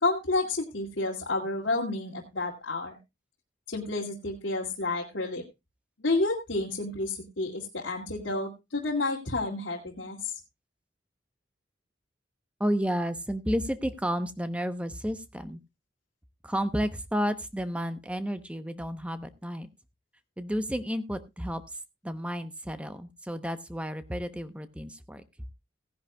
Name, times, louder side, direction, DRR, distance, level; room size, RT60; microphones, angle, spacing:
voice 1, 0.0-3.0 3.7-5.4 6.0-10.3, left 2 dB, 80° left, -2 dB, 2.3 m, -30 dB
voice 2, 12.6-15.6 16.4-19.7 20.4-21.6 22.0-25.2, equal, 5° right, 10 dB, 0.8 m, -31 dB
17.5 x 10.5 x 2.3 m, 0.23 s
head